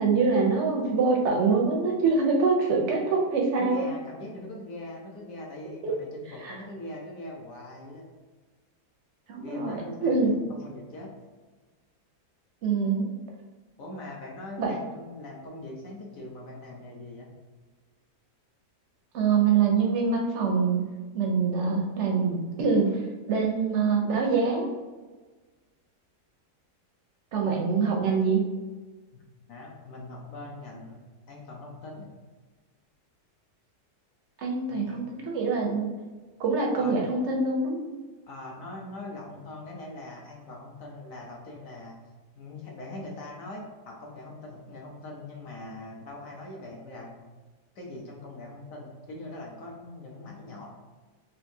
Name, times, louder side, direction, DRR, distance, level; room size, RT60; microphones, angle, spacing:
voice 1, 0.0-3.8 5.8-5.9 6.4-6.5 9.3-10.3 12.6-13.1 14.6-14.7 19.1-20.8 21.1-23.0 23.3-24.7 27.3-28.4 34.4-35.9 36.4-37.9, right 4 dB, 65° right, 0 dB, 0.7 m, -24 dB
voice 2, 3.6-8.0 9.4-11.1 13.8-17.3 29.5-31.0 31.3-32.1 34.7-35.0 36.8-36.9 38.3-42.0 42.4-47.2 47.7-50.7, left 2 dB, 60° left, -1 dB, 1.1 m, -42 dB
4.5 x 2.7 x 2.7 m, 1.3 s
omnidirectional pair, 1.8 m